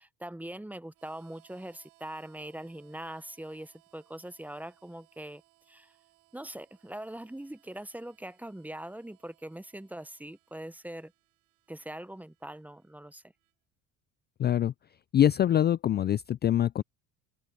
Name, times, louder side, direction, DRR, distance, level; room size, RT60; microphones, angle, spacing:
voice 1, 0.0-5.4 5.7-6.0 6.3-11.1 11.7-13.2, right 1 dB, 5° right, 0.8 m, -42 dB
Harmonica, 0.9-13.5, right 22 dB, 75° right, 7.0 m, -67 dB
voice 2, 14.4-14.7 15.1-16.8, left 11 dB, 30° left, 0.4 m, -24 dB
open air
supercardioid pair, 90°, 33 cm